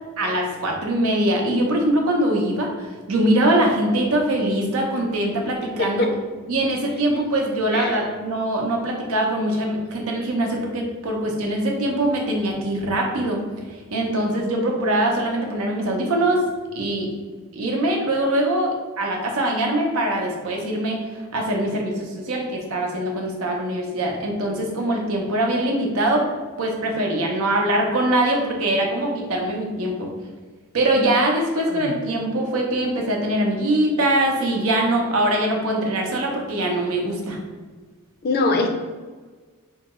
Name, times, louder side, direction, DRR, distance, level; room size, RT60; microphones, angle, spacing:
voice 1, 0.2-6.1 6.5-13.4 13.9-16.4 16.7-17.1 17.5-18.7 19.0-26.2 26.6-30.1 30.7-37.4, right 1 dB, 85° right, 0 dB, 0.7 m, -22 dB
voice 2, 38.2-38.7, left 3 dB, 50° left, 4 dB, 0.4 m, -22 dB
3.9 x 2.3 x 3.0 m, 1.4 s
head